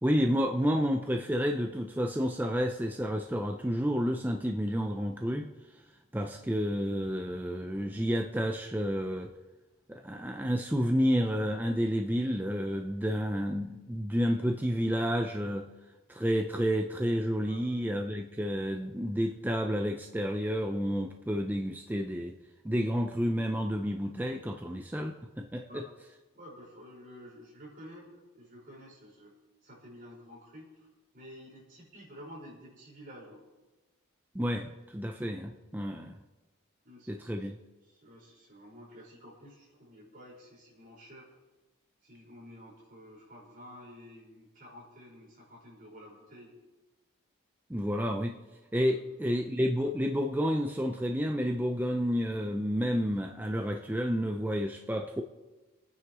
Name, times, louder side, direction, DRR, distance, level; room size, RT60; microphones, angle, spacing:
voice 1, 0.0-5.5 6.1-9.3 9.9-15.7 16.1-22.3 22.6-25.8 34.3-36.2 37.1-37.6 47.7-48.4 48.7-55.2, equal, 10° right, 3 dB, 0.5 m, -30 dB
voice 2, 26.3-29.3 29.6-30.9 31.1-33.4 36.8-37.3 37.8-41.3 42.0-46.5 48.9-49.1, equal, 40° right, -5 dB, 5.0 m, -51 dB
28.0 x 9.6 x 3.1 m, 1.2 s
head